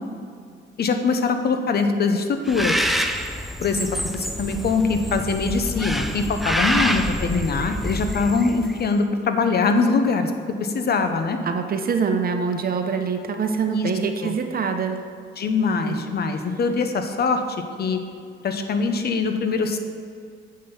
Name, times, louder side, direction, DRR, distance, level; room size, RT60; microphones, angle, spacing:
voice 1, 0.8-2.8 3.6-3.9 4.1-10.3 10.6-11.4 13.7-13.9 14.2-14.3 15.4-17.4 17.8-18.0 18.4-19.8, left 4 dB, 55° left, 7 dB, 0.9 m, -22 dB
Bird, 2.5-8.9, equal, ahead, 0.6 m, -27 dB
voice 2, 11.4-15.0 15.6-16.0, right 5 dB, 50° right, 6 dB, 0.9 m, -25 dB
7.6 x 5.4 x 7.0 m, 2.4 s
cardioid pair, 90°, 20 cm